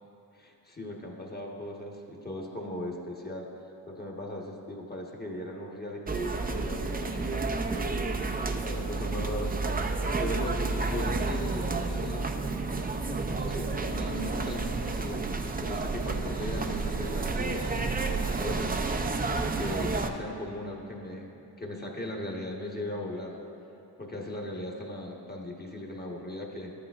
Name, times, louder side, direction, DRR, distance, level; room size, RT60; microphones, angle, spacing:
voice 1, 0.3-3.5 3.9-8.2 8.7-9.6 10.2-12.3 13.0-15.2 15.6-18.7 19.5-23.4 24.0-26.7, left 1 dB, 20° left, -1 dB, 1.2 m, -38 dB
sound 1, 6.1-20.1, right 3 dB, 20° right, 0.5 m, -30 dB
13.0 x 8.7 x 2.4 m, 2.9 s
cardioid pair, 75°, 43 cm